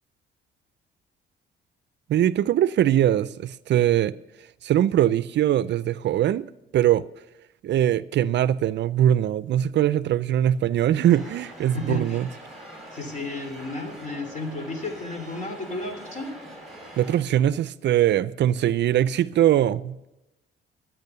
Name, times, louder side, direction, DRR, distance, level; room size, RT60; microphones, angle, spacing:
voice 1, 2.1-4.1 4.6-6.5 6.7-7.0 7.6-12.3 17.0-20.0, right 11 dB, 60° right, 0.5 m, -21 dB
sound 1, 11.0-17.2, right 1 dB, ahead, 5.2 m, -43 dB
voice 2, 11.7-12.2 12.9-16.3, left 2 dB, 40° left, 3.1 m, -33 dB
12.0 x 9.0 x 6.7 m
cardioid pair, 90°, 20 cm